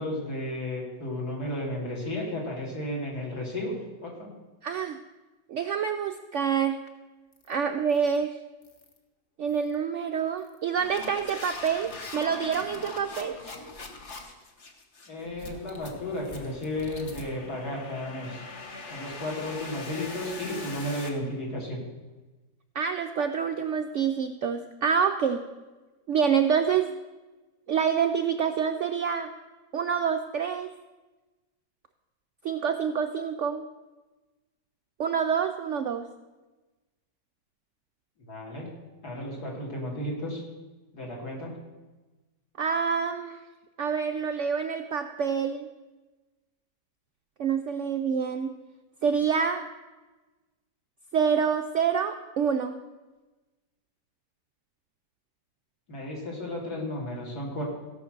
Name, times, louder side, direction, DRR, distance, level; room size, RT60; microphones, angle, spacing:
voice 1, 0.0-3.7 4.0-4.3 15.1-18.4 18.9-21.8 38.2-38.7 39.0-40.4 40.9-41.6 55.9-57.6, left 1 dB, 60° left, -3 dB, 3.3 m, -33 dB
voice 2, 4.6-5.0 5.5-6.8 7.5-8.4 9.4-13.4 22.7-25.4 26.1-26.9 27.7-29.3 29.7-30.7 32.4-33.7 35.0-36.1 42.6-43.4 43.8-45.7 47.4-48.5 49.0-49.6 51.1-52.8, right 7 dB, 90° right, 6 dB, 0.6 m, -27 dB
sound 1, 7.3-7.5 7.9-8.2 8.6-9.0 9.5-9.7 10.4-21.1, left 3 dB, 45° left, 1.5 m, -42 dB
16.0 x 6.0 x 6.6 m, 1.2 s
omnidirectional pair, 1.9 m